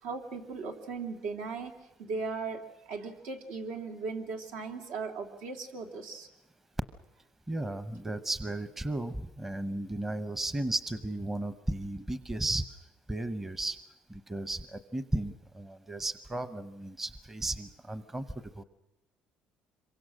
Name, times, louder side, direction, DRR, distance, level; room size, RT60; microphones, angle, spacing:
voice 1, 0.0-6.3, right 4 dB, 80° right, 4 dB, 3.1 m, -38 dB
voice 2, 7.5-12.6 13.1-13.8 14.1-18.2 18.6-18.7, right 1 dB, 10° right, 12 dB, 0.8 m, -34 dB
26.5 x 23.5 x 6.4 m, 0.95 s
cardioid pair, 160°, 3 cm